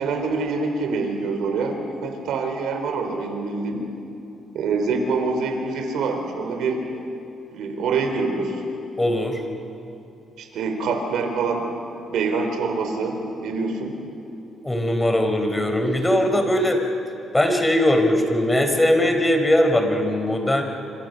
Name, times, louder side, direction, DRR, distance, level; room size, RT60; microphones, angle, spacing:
voice 1, 0.0-3.8 4.5-6.8 7.5-8.6 10.4-11.7 12.1-14.0, right 4 dB, 80° right, 4 dB, 4.1 m, -25 dB
voice 2, 9.0-9.4 14.6-16.8 17.3-20.6, left 1 dB, 10° left, 5 dB, 4.1 m, -20 dB
28.0 x 26.0 x 6.8 m, 2.8 s
cardioid pair, 90°, 0 cm